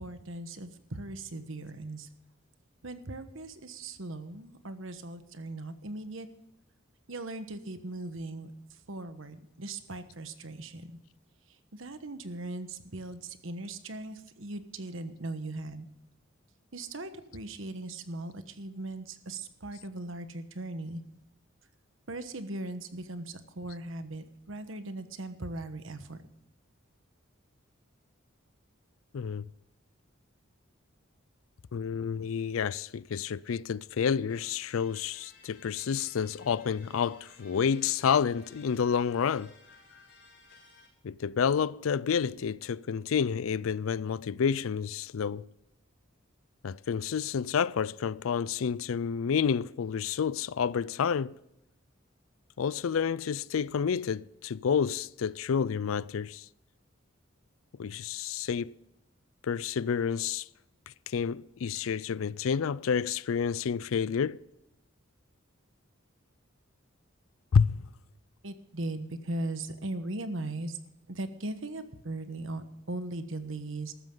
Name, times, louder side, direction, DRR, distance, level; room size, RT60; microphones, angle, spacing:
voice 1, 0.0-2.1 2.8-6.3 7.1-8.5 8.9-11.0 11.7-15.9 16.7-21.0 22.1-26.2 68.4-70.8 71.1-73.9, right 2 dB, 75° right, 1.2 m, -39 dB
voice 2, 29.1-29.5 31.7-39.5 41.0-45.5 46.6-51.4 52.6-56.5 57.8-58.7 59.4-60.5 61.1-64.4 67.5-67.8, left 6 dB, 85° left, 0.4 m, -29 dB
sound 1, 34.3-40.9, left 3 dB, 55° left, 4.5 m, -57 dB
14.5 x 13.0 x 3.9 m
head